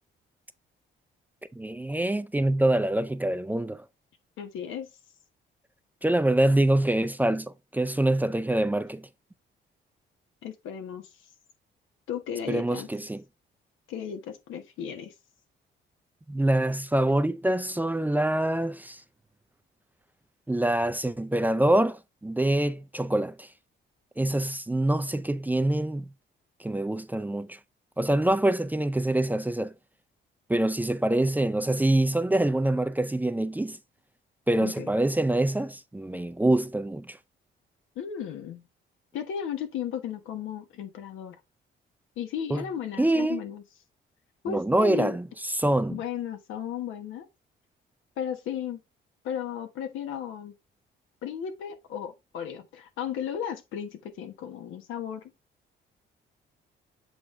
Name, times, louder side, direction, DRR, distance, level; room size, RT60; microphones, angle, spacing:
voice 1, 1.5-3.9 6.0-9.1 12.5-13.2 16.3-19.0 20.5-23.5 24.2-26.1 26.6-27.6 28.0-29.7 30.5-33.8 34.5-37.2 42.5-42.6 43.0-43.4 44.5-45.2 45.6-46.0, right 1 dB, 10° right, 0.4 m, -25 dB
voice 2, 4.4-4.9 10.4-11.1 12.1-12.9 13.9-15.1 34.6-34.9 37.9-38.6 39.1-41.4 42.2-43.6 44.4-45.2 45.9-47.3 48.2-48.8 49.2-50.5 51.2-55.2, left 8 dB, 90° left, 1.2 m, -35 dB
7.8 x 3.8 x 3.2 m
cardioid pair, 90°, 20 cm